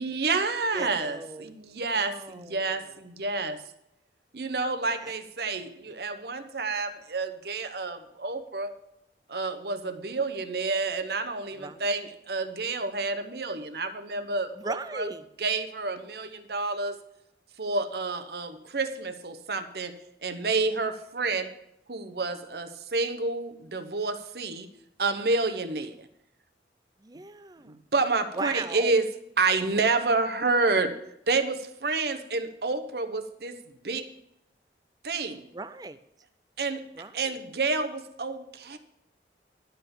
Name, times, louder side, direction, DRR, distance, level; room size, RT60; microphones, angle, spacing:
voice 1, 0.0-3.6 4.3-8.7 9.3-15.1 15.4-17.0 17.6-21.5 21.9-24.7 25.0-26.0 27.6-29.1 29.4-31.0 31.3-33.6 33.8-34.1 35.0-35.5 36.6-36.8 37.1-38.8, right 3 dB, 60° right, 9 dB, 0.9 m, -29 dB
voice 2, 0.7-1.6 1.9-2.9 4.9-5.1 11.6-11.9 14.6-15.3 27.0-27.8 28.3-28.9 35.5-36.0 36.9-37.4, right 3 dB, 20° right, 12 dB, 0.5 m, -38 dB
11.5 x 5.7 x 7.1 m, 0.80 s
head